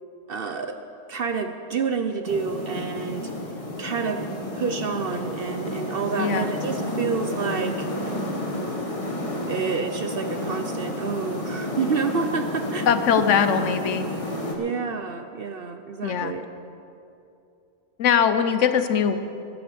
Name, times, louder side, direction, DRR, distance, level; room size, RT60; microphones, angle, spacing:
voice 1, 0.3-0.8 1.1-3.3 3.8-4.3 4.5-7.9 9.5-12.8 14.6-16.4, right 5 dB, 55° right, 7 dB, 0.7 m, -28 dB
sound 1, 2.2-14.6, left 1 dB, 25° left, 1.4 m, -31 dB
voice 2, 6.2-6.5 12.9-14.1 16.0-16.3 18.0-19.2, left 7 dB, 65° left, 10 dB, 1.0 m, -21 dB
13.0 x 9.5 x 6.9 m, 2.7 s
omnidirectional pair, 1.4 m